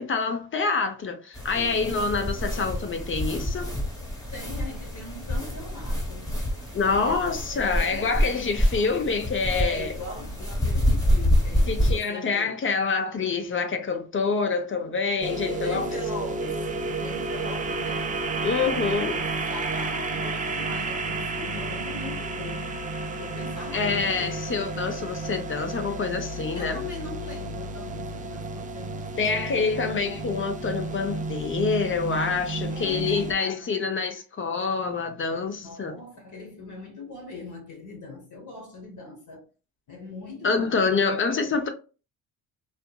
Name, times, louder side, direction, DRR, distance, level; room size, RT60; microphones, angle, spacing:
voice 1, 0.0-3.7 6.7-9.9 11.7-15.9 18.4-19.2 23.7-26.8 29.2-35.9 40.4-41.7, left 4 dB, 30° left, 0.5 m, -26 dB
sound 1, 1.3-12.0, equal, 10° left, 1.1 m, -27 dB
voice 2, 4.3-6.3 6.8-8.5 9.5-12.6 15.6-18.2 18.6-22.8 23.2-24.4 26.5-30.3 32.6-33.9 35.6-39.5 39.9-40.8, left 2 dB, 50° left, 0.9 m, -40 dB
sound 2, 15.2-33.3, right 2 dB, 20° right, 0.3 m, -31 dB
2.8 x 2.5 x 2.2 m
cardioid pair, 105°, 40 cm